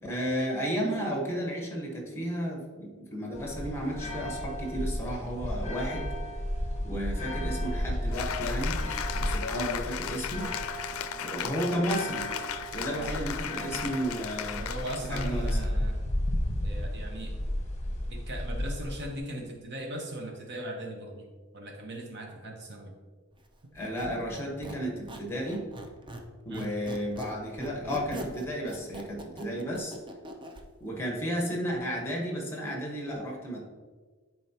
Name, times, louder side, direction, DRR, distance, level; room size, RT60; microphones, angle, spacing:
voice 1, 0.0-6.1 6.8-8.8 9.1-10.5 11.2-12.3 12.7-14.6 15.1-15.6 23.7-25.6 26.4-29.9 30.8-33.6, equal, 10° left, -1 dB, 1.3 m, -33 dB
sound 1, 3.3-19.2, equal, 35° left, 1.1 m, -33 dB
Cheering / Applause, 8.1-15.6, left 8 dB, 70° left, 0.4 m, -36 dB
voice 2, 14.6-16.1 16.6-17.4 18.1-23.0 26.5-26.7, right 1 dB, 55° right, 2 dB, 0.9 m, -39 dB
Squeak, 23.8-26.3 26.5-30.6, right 1 dB, 25° right, 0.6 m, -42 dB
10.5 x 4.5 x 2.9 m, 1.4 s
head